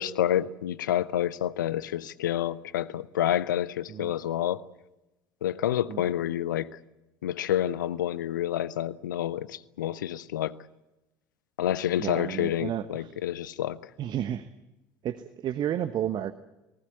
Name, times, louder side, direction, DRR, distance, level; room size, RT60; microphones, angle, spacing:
voice 1, 0.0-4.6 5.4-6.7 7.2-10.5 11.6-13.9, left 11 dB, 70° left, 0.8 m, -28 dB
voice 2, 12.0-13.1 14.0-14.5 15.0-16.3, right 10 dB, 45° right, 1.1 m, -31 dB
29.0 x 19.5 x 8.2 m
figure-of-eight pair, 60°, 11 cm